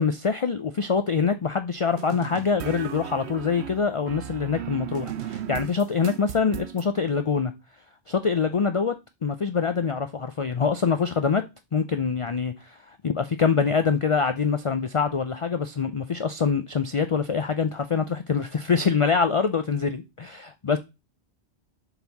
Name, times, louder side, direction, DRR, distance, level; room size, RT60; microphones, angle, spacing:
voice 1, 0.0-7.5 8.1-8.9 9.2-11.4 11.7-12.8 13.0-20.8, left 5 dB, 40° left, 0.5 m, -24 dB
sound 1, 2.0-6.9, right 10 dB, 80° right, 0.9 m, -36 dB
6.9 x 4.1 x 4.1 m
omnidirectional pair, 1.1 m